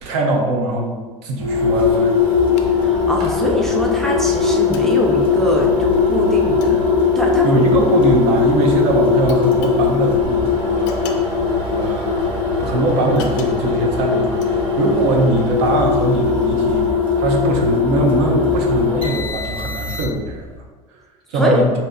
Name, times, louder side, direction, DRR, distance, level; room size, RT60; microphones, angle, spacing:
voice 1, 0.0-2.2 7.4-11.2 11.7-12.2 12.6-20.5 21.3-21.7, right 2 dB, 55° right, 2 dB, 0.6 m, -21 dB
sound 1, 1.4-20.4, left 5 dB, 25° right, 1.2 m, -19 dB
sound 2, 2.1-16.9, left 4 dB, 55° left, 0.5 m, -33 dB
voice 2, 2.8-6.8 7.2-7.5 21.3-21.6, equal, ahead, -1 dB, 0.5 m, -22 dB
5.1 x 2.7 x 2.2 m, 1.3 s
figure-of-eight pair, 75°, 19 cm